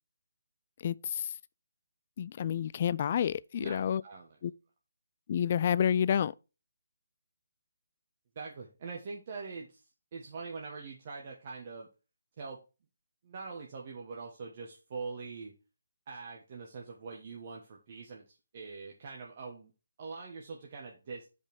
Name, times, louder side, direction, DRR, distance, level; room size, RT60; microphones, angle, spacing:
voice 1, 0.8-1.3 2.2-4.0 4.4-4.5 5.3-6.3, left 9 dB, 40° left, 0.3 m, -29 dB
voice 2, 3.6-4.4 8.3-11.9 12.4-12.6 13.2-15.5 16.1-19.7 20.0-21.3, right 4 dB, 40° right, 1.4 m, -43 dB
5.3 x 5.1 x 6.3 m
figure-of-eight pair, 150°, 0 cm